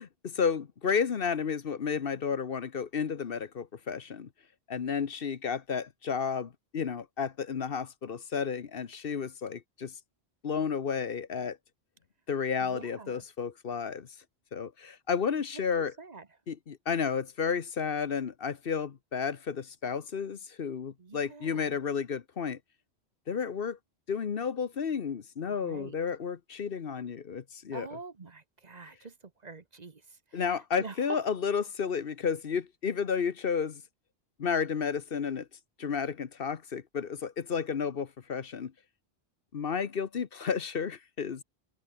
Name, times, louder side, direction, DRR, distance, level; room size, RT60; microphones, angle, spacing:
voice 1, 0.0-4.3 4.7-9.9 10.4-11.6 12.3-14.1 14.5-15.9 16.5-22.6 23.3-23.8 24.1-27.9 30.3-33.8 34.4-35.5 35.8-38.7 39.5-41.4, left 6 dB, 60° left, 1.2 m, -32 dB
voice 2, 12.6-13.2 16.0-16.3 21.0-21.8 25.6-26.0 27.7-29.1 29.4-31.2, right 4 dB, 40° right, 1.2 m, -45 dB
omnidirectional pair, 1.1 m